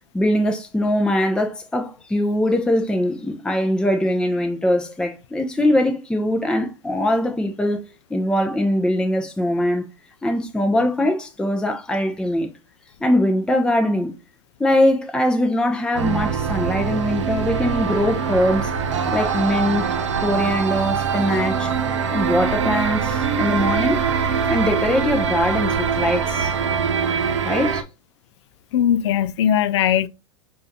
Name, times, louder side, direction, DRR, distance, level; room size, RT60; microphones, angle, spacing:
voice 1, 0.1-7.8 8.1-9.8 10.2-12.5 13.0-14.1 14.6-18.7 19.1-19.8 20.2-21.7 22.1-24.0 24.5-26.5 27.4-27.8, left 1 dB, 5° left, 0.7 m, -21 dB
sound 1, 15.9-27.8, right 6 dB, 75° right, 0.8 m, -23 dB
voice 2, 28.7-30.1, left 10 dB, 65° left, 0.4 m, -19 dB
6.6 x 2.6 x 2.8 m
hypercardioid pair, 95°, 15 cm